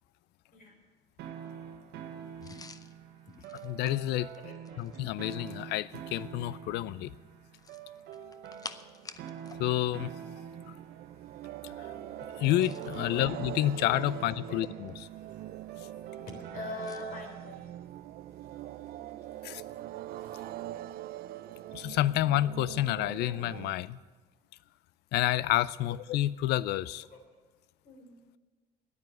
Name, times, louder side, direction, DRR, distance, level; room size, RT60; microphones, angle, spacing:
sound 1, 1.2-17.1, right 8 dB, 85° right, 1.2 m, -46 dB
sound 2, 2.4-5.1 7.5-9.6 9.9-10.1 12.3-13.0 13.8-14.9 16.8-17.1, left 4 dB, 20° left, 0.6 m, -49 dB
voice 1, 3.6-4.3 4.8-7.1 9.6-10.1 10.7-10.8 11.8-11.9 12.4-14.9 19.4-19.6 21.7-24.0 25.1-27.0, left 14 dB, 80° left, 19 dB, 0.4 m, -29 dB
voice 2, 4.4-4.9 13.1-13.3 14.5-14.6 16.5-17.7 27.1-27.2 27.8-28.1, left 2 dB, 55° left, 1 dB, 3.6 m, -42 dB
sound 3, 8.2-23.7, right 13 dB, 65° right, 0.4 m, -44 dB
9.8 x 9.0 x 9.7 m, 1.3 s
cardioid pair, 110°, 17 cm